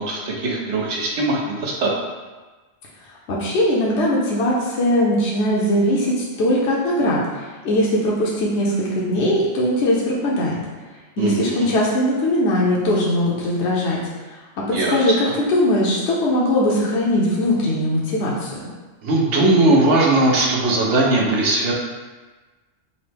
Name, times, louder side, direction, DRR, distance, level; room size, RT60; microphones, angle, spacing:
voice 1, 0.0-1.9 11.2-11.7 14.7-15.2 19.0-21.7, right 2 dB, 70° right, -2 dB, 1.0 m, -19 dB
voice 2, 3.3-10.6 11.2-14.0 14.3-14.4 14.9-15.1 15.5-18.6, left 1 dB, 65° left, -5 dB, 0.9 m, -20 dB
5.2 x 2.1 x 3.3 m, 1.3 s
omnidirectional pair, 1.3 m